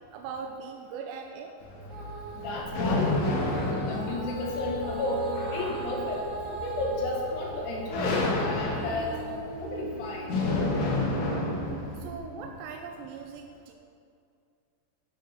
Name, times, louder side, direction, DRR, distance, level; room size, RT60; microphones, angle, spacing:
voice 1, 0.1-1.5 12.0-13.7, right 5 dB, 90° right, 2 dB, 2.8 m, -40 dB
sound 1, 1.6-12.0, left 2 dB, 60° left, 2.1 m, -31 dB
Female singing, 1.9-7.8 8.2-12.5 13.1-13.2, right 3 dB, 15° right, 1.8 m, -39 dB
voice 2, 2.3-3.2 3.9-10.4, left 2 dB, 75° left, -2 dB, 3.3 m, -32 dB
sound 2, 2.6-12.1, right 2 dB, 25° left, 1.4 m, -45 dB
13.5 x 7.6 x 3.9 m, 2.3 s
omnidirectional pair, 5.0 m